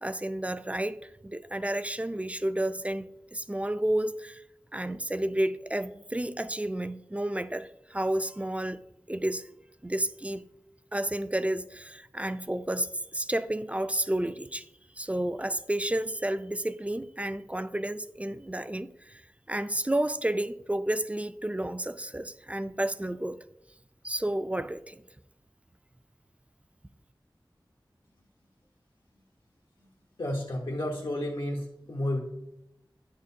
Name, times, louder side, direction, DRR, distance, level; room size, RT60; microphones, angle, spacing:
voice 1, 0.0-4.4 4.7-8.8 9.1-9.5 9.8-10.5 10.9-14.7 15.0-19.2 19.5-23.4 24.0-25.0, right 1 dB, 15° right, 0.3 m, -31 dB
voice 2, 30.2-32.2, left 1 dB, 85° left, 1.0 m, -31 dB
9.7 x 6.4 x 2.7 m
wide cardioid pair, 50°, 8 cm